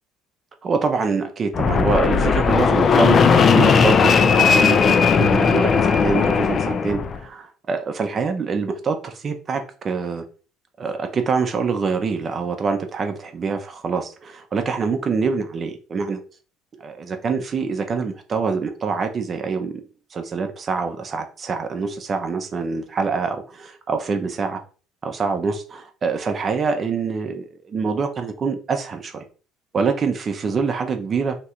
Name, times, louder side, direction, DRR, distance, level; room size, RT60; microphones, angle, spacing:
voice 1, 0.6-10.2 10.8-16.2 16.8-19.8 20.1-24.6 25.0-29.2 29.7-31.4, right 5 dB, 35° right, 6 dB, 0.5 m, -25 dB
Fixed-wing aircraft airplane, 1.5-7.2, left 5 dB, 40° left, 0.4 m, -17 dB
2.9 x 2.4 x 4.2 m, 0.38 s
cardioid pair, 110°, 0 cm